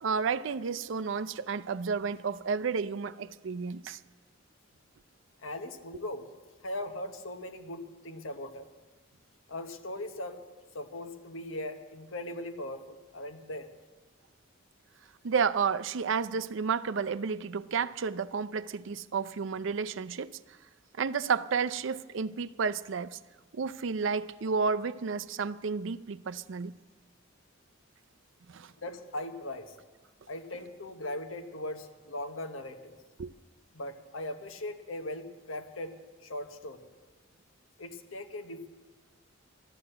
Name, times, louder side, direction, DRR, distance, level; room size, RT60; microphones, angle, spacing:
voice 1, 0.0-4.0 15.2-20.3 21.0-23.2 23.5-26.7 28.5-28.7 33.2-33.3, right 5 dB, 65° right, 0.5 m, -31 dB
voice 2, 5.4-6.3 6.6-8.7 9.5-10.4 10.7-13.7 28.8-29.7 30.3-33.0 33.7-35.9 36.2-36.8 37.8-38.7, left 1 dB, 85° left, 1.1 m, -39 dB
12.5 x 12.0 x 7.8 m
head